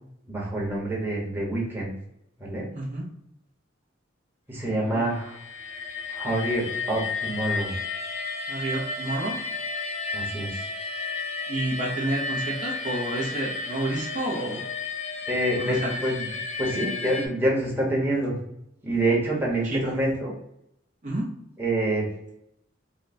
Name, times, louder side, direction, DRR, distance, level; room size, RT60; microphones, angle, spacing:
voice 1, 0.3-1.9 2.4-2.7 4.5-5.4 6.1-7.8 10.1-10.7 15.3-16.3 16.6-18.3 18.8-20.3 21.6-22.0, right 1 dB, 10° right, -4 dB, 1.0 m, -26 dB
voice 2, 2.7-3.0 4.9-5.1 8.5-9.4 11.5-14.6 15.6-16.0 19.6-20.0 21.0-21.3, right 1 dB, 40° right, -4 dB, 0.7 m, -30 dB
sound 1, 5.0-17.3, left 4 dB, 35° left, 0.6 m, -33 dB
3.8 x 2.1 x 4.1 m, 0.79 s
head